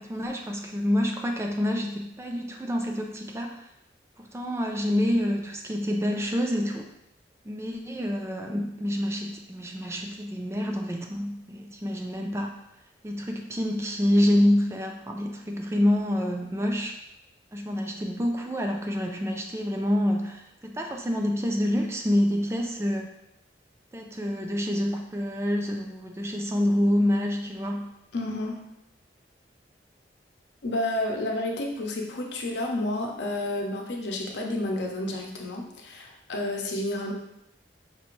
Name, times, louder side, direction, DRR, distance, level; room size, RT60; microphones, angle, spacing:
voice 1, 0.0-3.6 4.2-6.9 7.5-12.6 13.0-16.9 17.5-23.1 23.9-27.9, left 1 dB, 15° right, 2 dB, 0.3 m, -27 dB
voice 2, 28.1-28.5 30.6-37.1, left 1 dB, 85° left, 1 dB, 0.7 m, -30 dB
5.2 x 2.5 x 3.0 m, 0.82 s
head